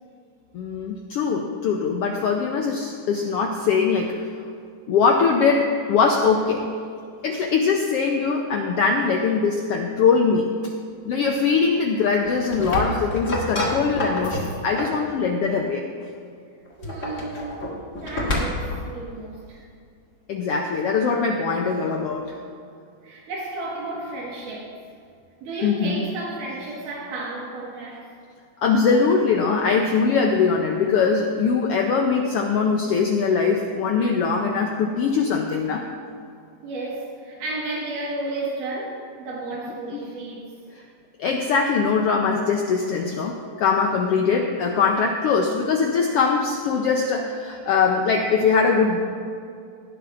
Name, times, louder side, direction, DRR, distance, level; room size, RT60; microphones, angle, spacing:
voice 1, 0.5-4.2 4.9-6.6 7.2-10.5 11.0-15.9 20.3-22.3 25.6-26.0 28.6-35.8 39.9-40.0 40.7-40.8 41.2-49.0, left 5 dB, 90° left, 2 dB, 1.3 m, -21 dB
sound 1, 12.2-15.0 16.7-18.8, left 1 dB, 30° left, 1.6 m, -28 dB
voice 2, 16.8-19.6 23.0-24.7 25.4-28.0 36.3-40.5, right 2 dB, 90° right, -4 dB, 3.2 m, -33 dB
18.5 x 11.5 x 2.6 m, 2.4 s
omnidirectional pair, 3.6 m